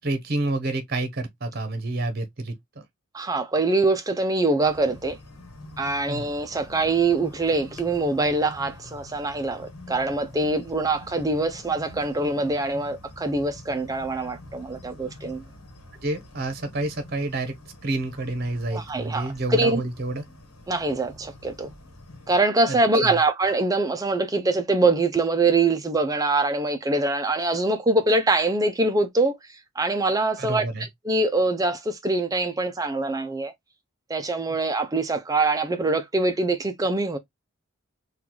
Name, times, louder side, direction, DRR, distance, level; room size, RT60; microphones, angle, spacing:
voice 1, 0.0-2.5 6.1-6.2 16.0-17.5 17.8-20.2 23.0-23.1 30.4-30.9, right 2 dB, 45° right, 0.7 m, -28 dB
voice 2, 3.1-5.2 5.8-15.4 18.7-19.8 20.7-21.7 22.3-30.7 31.0-33.5 34.1-37.2, right 2 dB, 15° right, 0.4 m, -24 dB
sound 1, 4.6-22.4, left 1 dB, 90° left, 1.1 m, -46 dB
3.7 x 2.3 x 2.9 m
head